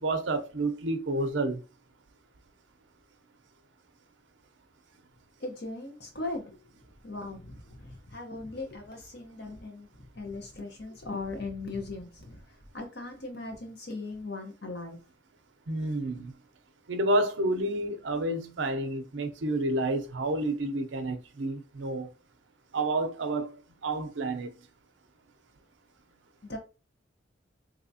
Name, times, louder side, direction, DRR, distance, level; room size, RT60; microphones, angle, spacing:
voice 1, 0.0-1.6 15.7-16.3 16.9-22.1 22.7-23.5 23.8-24.5, right 2 dB, 75° right, 0.6 m, -29 dB
voice 2, 5.4-6.6 7.0-12.4 12.7-15.0 26.4-26.6, left 2 dB, 55° left, 0.9 m, -39 dB
3.4 x 2.7 x 2.7 m
head